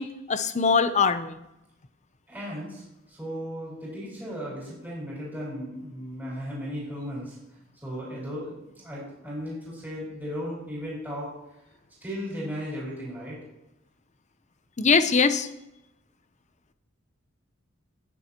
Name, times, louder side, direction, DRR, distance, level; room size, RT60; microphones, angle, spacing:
voice 1, 0.0-1.4 14.8-15.5, left 5 dB, 35° left, 11 dB, 0.7 m, -22 dB
voice 2, 2.3-2.8 3.1-7.4 7.8-11.3 12.0-13.4, equal, 10° right, -6 dB, 4.7 m, -36 dB
19.0 x 7.1 x 2.9 m, 0.89 s
head